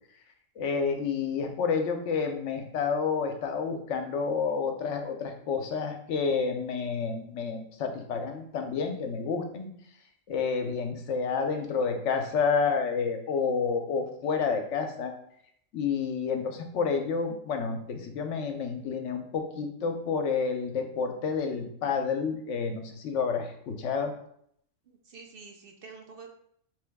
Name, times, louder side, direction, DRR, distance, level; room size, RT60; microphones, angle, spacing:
voice 1, 0.6-9.7 10.3-15.1 15.7-24.1, left 5 dB, 75° left, 5 dB, 1.0 m, -29 dB
voice 2, 24.9-26.3, right 4 dB, 60° right, 2 dB, 0.7 m, -48 dB
3.8 x 3.2 x 3.4 m, 0.69 s
omnidirectional pair, 1.3 m